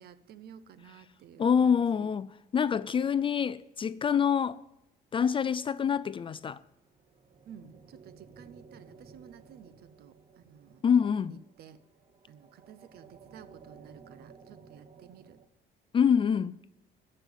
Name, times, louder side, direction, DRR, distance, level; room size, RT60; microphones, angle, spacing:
voice 1, 0.0-2.1 7.4-10.8 11.6-11.8 12.3-15.4, right 8 dB, 65° right, 0.9 m, -53 dB
voice 2, 1.4-4.6 5.1-6.6 10.8-11.4 15.9-16.5, left 7 dB, 30° left, 0.4 m, -26 dB
sound 1, 6.6-15.4, right 5 dB, 35° right, 1.1 m, -55 dB
14.5 x 5.7 x 9.3 m
cardioid pair, 110°, 17 cm